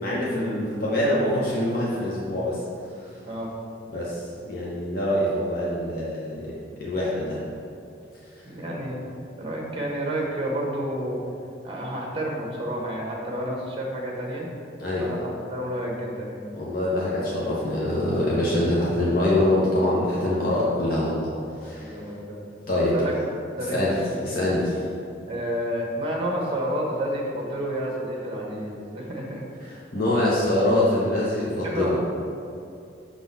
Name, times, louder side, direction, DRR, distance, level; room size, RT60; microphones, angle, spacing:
voice 1, 0.0-2.6 3.9-7.4 14.8-15.0 16.5-21.3 21.6-22.0 22.7-22.9 23.7-23.9 24.2-24.8 29.9-32.0, left 1 dB, 50° left, -7 dB, 0.9 m, -24 dB
voice 2, 8.4-9.0 9.4-11.2 11.6-14.5 15.0-16.4 21.8-22.4 22.9-23.1 23.6-24.0 25.3-29.8 31.6-32.0, right 1 dB, 30° right, -2 dB, 1.0 m, -30 dB
6.2 x 3.9 x 4.1 m, 2.6 s
head